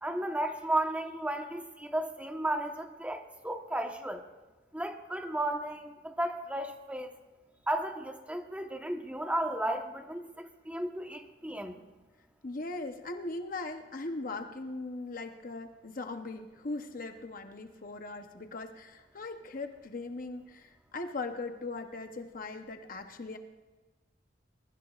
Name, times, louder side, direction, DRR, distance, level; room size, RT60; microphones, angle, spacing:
voice 1, 0.0-4.2 4.7-7.1 7.7-11.8, right 1 dB, 10° right, 4 dB, 1.1 m, -34 dB
voice 2, 12.4-23.4, left 3 dB, 50° left, 6 dB, 0.8 m, -39 dB
23.0 x 22.0 x 2.4 m, 1.2 s
head